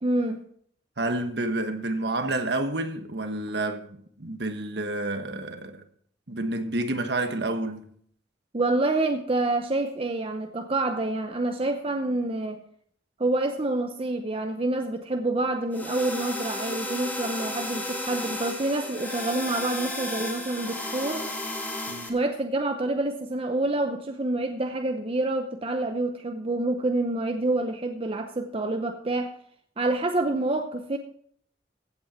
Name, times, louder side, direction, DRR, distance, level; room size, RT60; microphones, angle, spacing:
voice 1, 0.0-0.5 8.5-12.6 13.2-21.3 22.1-29.4 29.8-31.0, right 2 dB, 35° right, 0.8 m, -27 dB
voice 2, 1.0-5.8 6.3-7.9 21.9-22.1, right 2 dB, 65° right, 1.4 m, -29 dB
sound 1, 15.7-22.1, left 1 dB, 10° left, 2.0 m, -33 dB
15.5 x 8.7 x 4.3 m
head